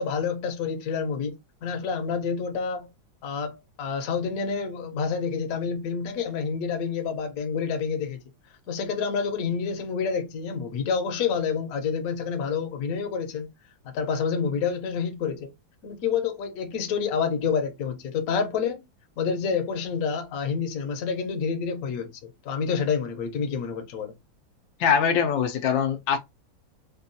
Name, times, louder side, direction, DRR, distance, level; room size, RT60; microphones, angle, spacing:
voice 1, 0.0-1.3 1.6-2.9 3.2-8.2 8.7-13.5 13.9-15.5 15.8-18.8 19.2-24.1, left 6 dB, 60° left, 1.1 m, -28 dB
voice 2, 24.8-26.2, left 7 dB, 80° left, 1.2 m, -22 dB
4.4 x 2.3 x 2.6 m
omnidirectional pair, 2.1 m